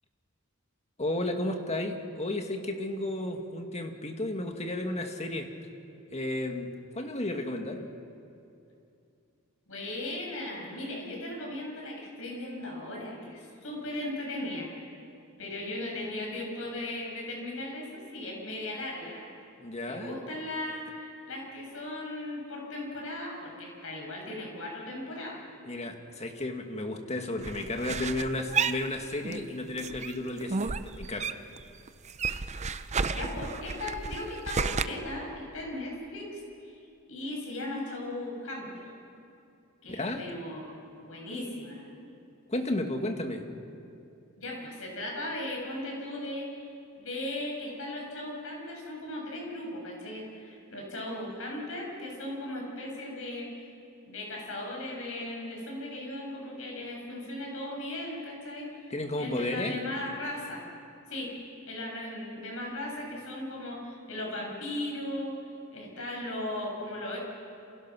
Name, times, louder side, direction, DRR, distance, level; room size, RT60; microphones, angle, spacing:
voice 1, 1.0-5.5 6.1-7.9 19.6-20.2 25.6-31.4 39.9-40.2 42.5-43.4 58.9-59.8, left 1 dB, 30° left, 4 dB, 2.0 m, -33 dB
voice 2, 9.7-14.7 15.4-19.3 19.9-25.4 33.1-36.8 37.1-38.9 39.8-41.8 44.4-46.6 46.9-53.5 54.1-58.7 59.2-60.7 61.1-61.4 61.7-65.4 65.7-67.2, left 1 dB, 70° left, -1 dB, 7.6 m, -37 dB
sound 1, 27.4-29.5 29.8-31.6 31.9-34.8, right 5 dB, 30° right, 0.6 m, -32 dB
28.0 x 27.0 x 6.2 m, 2.6 s
head